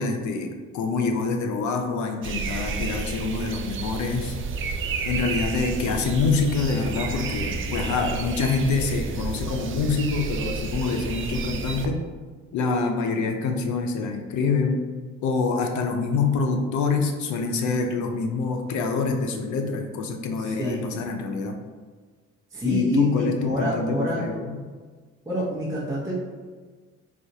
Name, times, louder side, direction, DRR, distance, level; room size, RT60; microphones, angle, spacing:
voice 1, 0.0-4.3 5.0-12.0 12.5-14.8 15.2-21.6 22.6-24.6, left 4 dB, 75° left, 4 dB, 0.6 m, -26 dB
sound 1, 2.2-11.9, right 4 dB, 45° right, 0.4 m, -31 dB
voice 2, 7.9-8.2 20.4-20.9 22.5-24.2 25.2-26.2, right 1 dB, 10° right, -9 dB, 0.9 m, -27 dB
4.3 x 2.4 x 2.7 m, 1.5 s
cardioid pair, 90°, 30 cm